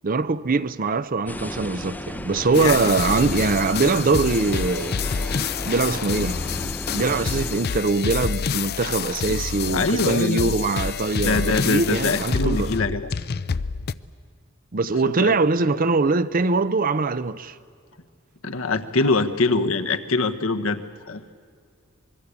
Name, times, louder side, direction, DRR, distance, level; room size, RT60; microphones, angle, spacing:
voice 1, 0.0-5.0 5.6-6.4 6.9-12.7 14.7-17.5, right 3 dB, 45° right, 0.7 m, -22 dB
sound 1, 1.3-7.8, left 1 dB, 10° left, 0.7 m, -34 dB
voice 2, 2.5-2.9 9.7-10.5 11.2-13.1 15.0-15.3 18.4-20.8 21.1-21.2, left 3 dB, 70° left, 1.3 m, -23 dB
sound 2, 2.5-13.9, left 6 dB, 50° left, 0.5 m, -28 dB
25.0 x 22.0 x 8.3 m
head